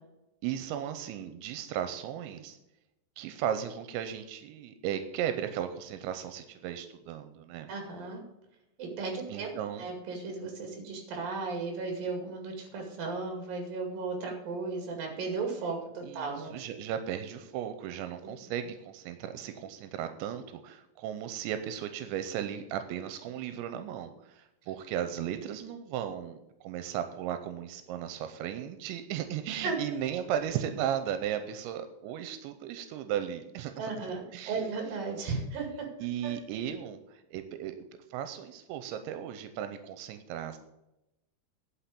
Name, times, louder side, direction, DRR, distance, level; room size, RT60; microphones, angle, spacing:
voice 1, 0.4-2.6 3.2-7.7 9.3-9.8 16.0-33.9 34.3-34.6 36.0-37.8 38.1-40.6, right 10 dB, 90° right, 9 dB, 3.0 m, -36 dB
voice 2, 7.7-8.2 8.8-9.5 9.8-16.6 29.6-29.8 33.8-35.9 36.2-36.3, right 4 dB, 55° right, 2 dB, 3.7 m, -35 dB
10.5 x 5.8 x 8.4 m, 0.90 s
omnidirectional pair, 5.2 m